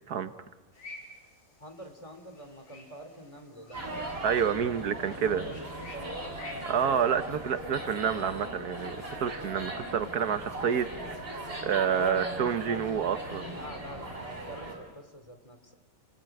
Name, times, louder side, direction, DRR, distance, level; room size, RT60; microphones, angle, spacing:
sound 1, 0.7-7.6, left 2 dB, 55° left, 5.0 m, -51 dB
voice 1, 1.6-5.7 5.9-7.3 7.6-7.7 11.9-12.8 13.4-15.7, equal, 20° left, 6 dB, 2.9 m, -46 dB
sound 2, 3.7-14.7, right 1 dB, 35° right, 6.1 m, -39 dB
voice 2, 4.2-5.5 6.7-10.9 11.2-13.4, right 7 dB, 75° right, 10 dB, 1.6 m, -28 dB
30.0 x 20.0 x 9.0 m, 1.3 s
omnidirectional pair, 1.7 m